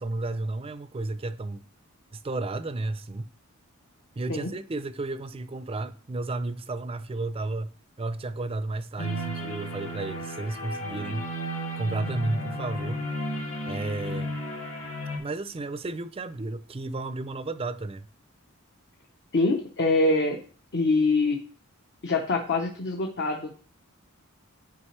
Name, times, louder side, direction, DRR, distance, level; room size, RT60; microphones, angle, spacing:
voice 1, 0.0-1.6 2.1-3.3 4.2-7.7 8.0-11.2 11.8-13.0 13.6-14.4 15.2-18.1, right 2 dB, 25° right, 0.4 m, -32 dB
sound 1, 9.0-15.2, equal, 75° left, 2.0 m, -34 dB
voice 2, 19.3-20.4 20.7-21.4 22.0-23.6, left 3 dB, 50° left, 0.8 m, -24 dB
9.7 x 4.9 x 3.2 m
head